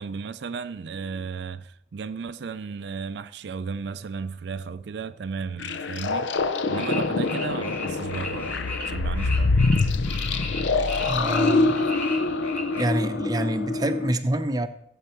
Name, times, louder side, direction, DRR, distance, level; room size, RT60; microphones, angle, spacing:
voice 1, 0.0-6.3 6.7-8.6 8.9-9.5, right 5 dB, 65° right, 0.4 m, -34 dB
sound 1, 5.6-14.1, left 3 dB, 75° left, 0.7 m, -25 dB
sound 2, 6.7-10.6 10.9-12.8, left 2 dB, 10° left, 2.0 m, -36 dB
voice 2, 11.0-11.8 12.7-14.7, right 1 dB, 20° right, 0.7 m, -26 dB
16.0 x 8.0 x 4.4 m
head